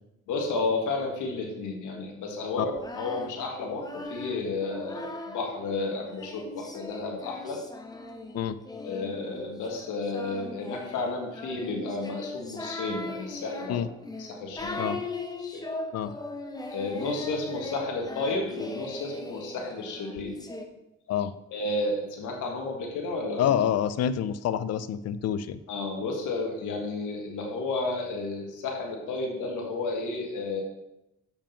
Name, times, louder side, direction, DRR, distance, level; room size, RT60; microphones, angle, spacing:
voice 1, 0.3-7.6 8.8-13.8 14.2-14.9 15.4-15.6 16.7-20.3 21.5-23.5 25.7-30.6, left 3 dB, 85° left, 1 dB, 1.6 m, -32 dB
Singing, 2.6-5.6 6.2-20.6, left 2 dB, 15° left, 0.9 m, -39 dB
voice 2, 23.4-25.6, left 9 dB, 55° left, 14 dB, 0.5 m, -27 dB
7.3 x 5.1 x 5.1 m, 0.90 s
cardioid pair, 90°, 30 cm